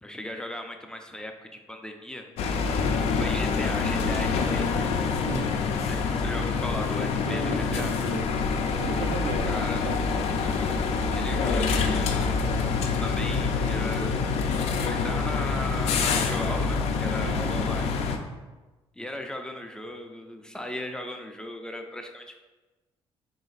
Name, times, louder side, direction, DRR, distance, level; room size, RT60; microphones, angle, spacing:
voice 1, 0.0-2.2 3.2-4.7 5.7-7.9 9.5-9.8 11.1-12.4 13.0-14.1 14.6-18.0 19.0-22.4, left 1 dB, 5° left, 4 dB, 0.4 m, -37 dB
sound 1, 2.4-18.2, left 5 dB, 75° left, 0.4 m, -26 dB
voice 2, 7.2-8.3 8.8-10.1 17.2-17.6, right 6 dB, 75° right, 6 dB, 0.4 m, -35 dB
sound 2, 10.7-18.3, left 3 dB, 45° right, 0.7 m, -35 dB
3.9 x 2.5 x 4.0 m, 1.2 s
cardioid pair, 90°, 11 cm